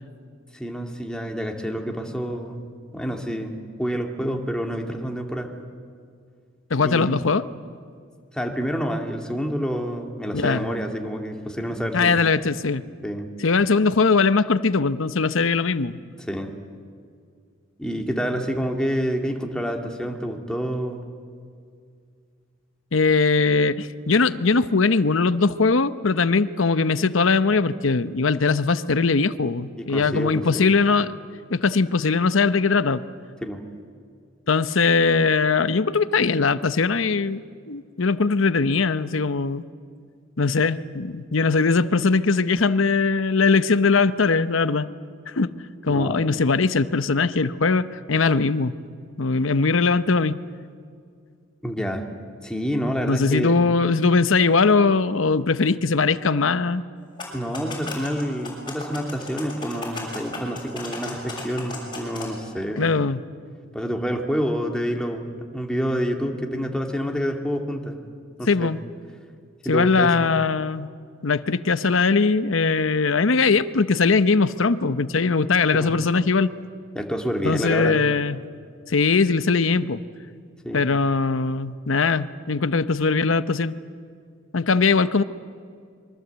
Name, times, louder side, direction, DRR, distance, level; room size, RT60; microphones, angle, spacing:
voice 1, 0.5-2.6 2.9-5.5 6.8-7.3 8.3-12.2 13.0-13.3 16.3-16.5 17.8-21.1 29.8-30.7 33.4-33.6 45.9-46.4 51.6-52.0 52.4-53.6 57.3-62.9 63.7-68.0 68.4-68.7 69.6-70.2 75.7-75.9 77.0-78.0 80.6-80.8, equal, 5° left, 2 dB, 2.3 m, -28 dB
voice 2, 6.7-7.4 10.3-10.6 11.9-12.8 13.4-16.0 22.9-31.1 31.5-33.0 34.5-37.4 37.7-39.6 40.4-44.9 45.3-45.5 45.8-48.7 49.2-50.3 53.1-56.8 62.8-63.2 68.5-68.8 69.7-70.9 71.2-76.5 77.4-78.4 78.9-80.0 80.7-83.8 84.5-85.2, left 4 dB, 75° left, 13 dB, 0.8 m, -20 dB
sound 1, 57.0-62.2, left 3 dB, 25° left, 6.9 m, -36 dB
26.5 x 23.0 x 8.1 m, 2.2 s
head